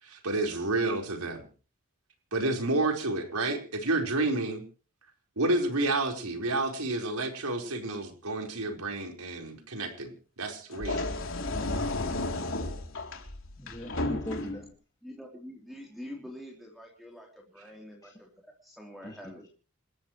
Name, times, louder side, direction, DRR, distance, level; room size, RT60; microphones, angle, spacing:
voice 1, 0.0-1.5 2.3-4.6 5.4-10.1 10.4-11.0, right 2 dB, 85° right, 4.8 m, -30 dB
sound 1, 10.7-14.7, left 2 dB, 60° left, 3.6 m, -33 dB
voice 2, 13.6-14.6 18.0-18.1 19.0-19.5, left 1 dB, 15° left, 2.2 m, -40 dB
voice 3, 15.0-19.5, equal, ahead, 3.7 m, -46 dB
28.5 x 13.5 x 3.2 m
head